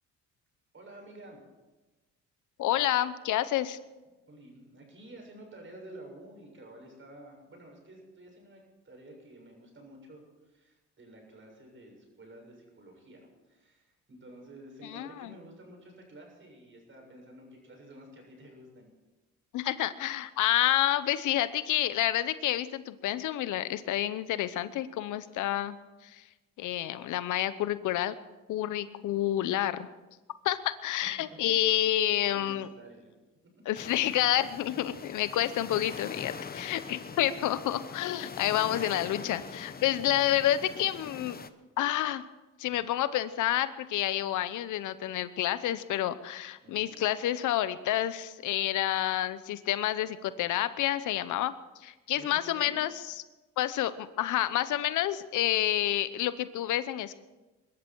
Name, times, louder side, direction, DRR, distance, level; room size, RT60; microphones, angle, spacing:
voice 1, 0.7-1.4 4.1-13.2 13.5-18.9 31.4-31.6 32.3-33.1 33.7-33.8 34.9-35.0 37.1-37.2 39.3-39.5 39.8-40.2 46.6-47.1 52.1-52.8, right 1 dB, 40° right, 1 dB, 7.1 m, -51 dB
voice 2, 2.6-3.8 14.8-15.3 19.5-25.8 26.0-26.2 26.6-28.1 28.5-29.9 30.4-32.7 33.7-41.4 41.8-42.2 42.6-51.5 51.8-52.9 53.6-57.2, left 13 dB, 85° left, 14 dB, 0.9 m, -29 dB
sound 1, 33.7-41.5, left 5 dB, 30° left, 0.9 m, -43 dB
23.0 x 13.0 x 4.6 m, 1.1 s
cardioid pair, 90°, 30 cm